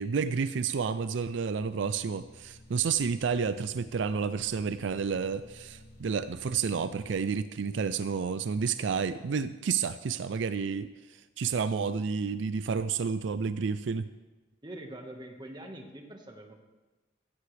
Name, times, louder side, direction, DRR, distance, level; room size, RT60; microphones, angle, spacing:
voice 1, 0.0-14.1, right 6 dB, 75° right, 13 dB, 0.4 m, -30 dB
sound 1, 1.6-7.2, left 1 dB, 55° left, 2.6 m, -53 dB
voice 2, 14.6-16.6, right 1 dB, 25° right, 3 dB, 1.5 m, -44 dB
15.0 x 15.0 x 3.3 m, 1.2 s
head